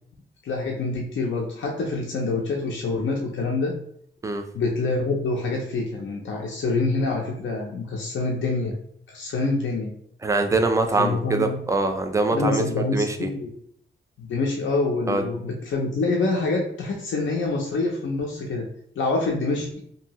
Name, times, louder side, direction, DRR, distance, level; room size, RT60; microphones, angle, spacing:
voice 1, 0.4-3.7 4.5-8.7 9.1-9.9 11.0-11.6 12.3-13.5 14.2-18.6 19.0-19.8, left 3 dB, 75° left, -1 dB, 0.5 m, -26 dB
voice 2, 10.2-13.3 15.1-15.2, right 3 dB, 15° right, 5 dB, 0.3 m, -23 dB
2.7 x 2.6 x 2.9 m, 0.68 s
wide cardioid pair, 130°, 20 cm